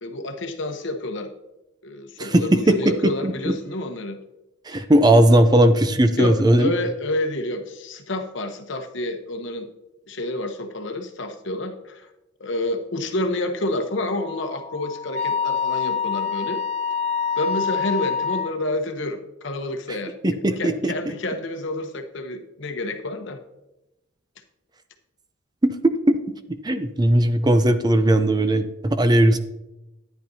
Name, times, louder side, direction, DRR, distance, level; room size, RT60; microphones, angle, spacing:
voice 1, 0.0-1.3 1.8-4.2 4.7-4.8 6.2-9.7 10.1-12.1 12.4-16.6 17.4-20.1 20.6-23.4, left 1 dB, 65° left, 6 dB, 0.9 m, -29 dB
voice 2, 2.2-2.9 3.2-3.3 4.7-6.7 20.2-20.9 25.6-26.2 26.5-29.4, right 1 dB, 20° right, 9 dB, 0.5 m, -18 dB
Wind instrument woodwind instrument, 14.2-18.5, left 6 dB, 65° right, 0.7 m, -26 dB
10.5 x 10.0 x 2.7 m, 0.96 s
head